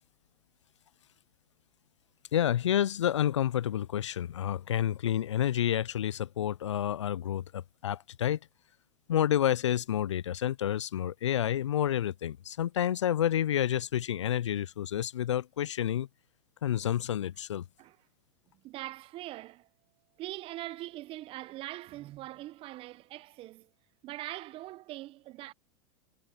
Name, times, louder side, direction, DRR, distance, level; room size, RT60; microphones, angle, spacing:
voice 1, 2.3-8.4 9.1-16.1 16.6-17.6, left 10 dB, 85° left, 0.4 m, -29 dB
voice 2, 18.6-19.7 20.2-23.7 24.0-25.5, right 16 dB, 40° right, 0.7 m, -42 dB
hypercardioid pair, 105°, 15 cm